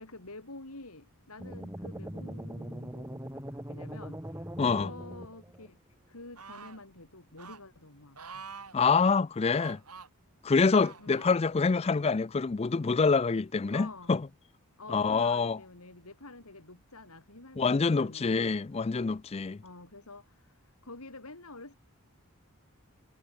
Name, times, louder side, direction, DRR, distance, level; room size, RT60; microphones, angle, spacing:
voice 1, 0.0-5.8 6.1-8.5 11.0-11.2 13.7-14.1 14.8-18.6 19.6-20.4 20.8-21.7, left 2 dB, 80° left, 4.3 m, -48 dB
sound 1, 1.4-5.7, equal, 10° right, 1.9 m, -41 dB
voice 2, 4.6-4.9 8.7-9.8 10.4-14.3 14.9-15.6 17.6-19.6, left 4 dB, 25° left, 0.4 m, -26 dB
sound 2, 6.4-6.8 7.4-7.6 8.2-8.8 9.5-10.1 10.7-11.3 12.1-12.2, right 5 dB, 90° right, 7.2 m, -47 dB
head